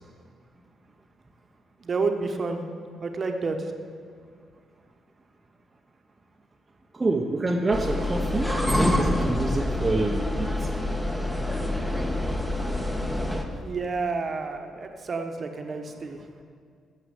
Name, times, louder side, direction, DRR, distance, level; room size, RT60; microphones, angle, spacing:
voice 1, 1.8-2.6 3.0-3.7 13.5-16.2, right 4 dB, 40° right, 5 dB, 1.1 m, -30 dB
voice 2, 6.9-10.7, right 2 dB, 25° right, 0 dB, 0.8 m, -27 dB
sound 1, 7.7-13.5, left 1 dB, 5° left, 1.1 m, -26 dB
9.7 x 6.7 x 8.2 m, 2.1 s
cardioid pair, 90°, 0 cm